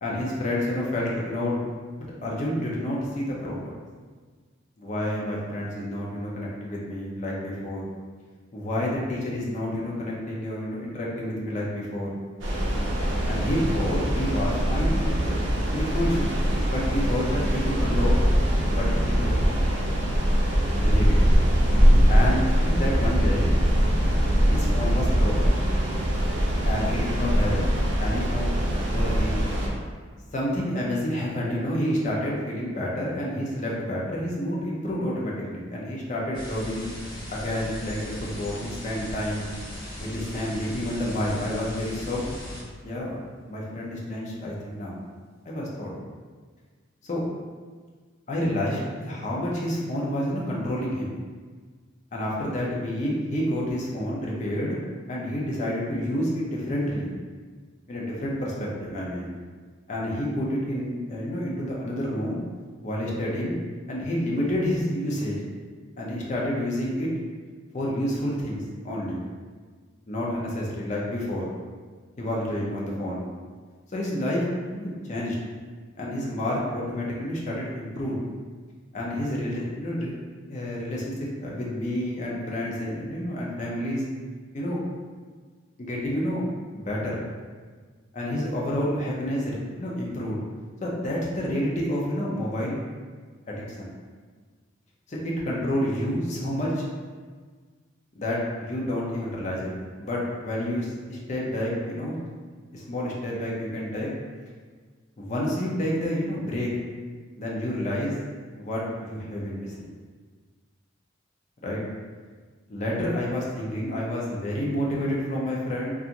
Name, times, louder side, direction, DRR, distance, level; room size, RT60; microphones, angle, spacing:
voice 1, 0.0-1.6 2.2-3.7 4.8-7.8 8.5-12.1 13.3-16.3 16.7-18.2 18.7-19.6 20.8-21.2 22.1-23.5 24.5-25.5 26.6-27.6 28.0-28.5 28.9-29.3 30.3-36.9 37.3-39.5 40.0-42.3 42.8-43.2 43.4-44.9 45.4-45.9 47.0-47.2 48.3-51.1 52.1-54.8 55.1-57.1 57.9-59.3 59.9-62.4 62.8-63.6 63.9-65.4 66.0-67.1 67.7-69.2 70.1-71.4 72.2-73.3 73.9-75.4 76.0-78.2 78.9-80.1 80.5-84.0 84.5-84.8 85.8-86.4 86.7-87.2 88.1-90.4 90.8-92.9 93.5-93.9 95.1-96.8 98.2-99.7 100.0-102.2 102.7-104.1 105.2-106.7 107.4-108.1 108.5-109.8 111.6-111.8 112.7-115.9, left 1 dB, 40° left, -4 dB, 0.5 m, -29 dB
sound 1, 12.4-29.7, equal, 65° right, 0.5 m, -22 dB
sound 2, 36.3-42.6, left 1 dB, 25° left, 1.2 m, -38 dB
2.8 x 2.4 x 2.5 m, 1.5 s
head